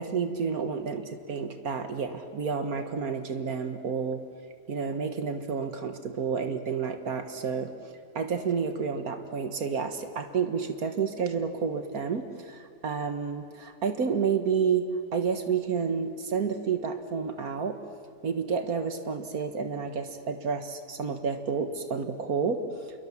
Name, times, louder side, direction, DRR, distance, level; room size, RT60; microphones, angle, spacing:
voice 1, 0.0-4.2 4.7-7.7 8.2-17.8 18.2-22.6, right 6 dB, 70° right, 8 dB, 1.9 m, -30 dB
27.5 x 22.5 x 7.2 m, 2.4 s
omnidirectional pair, 1.6 m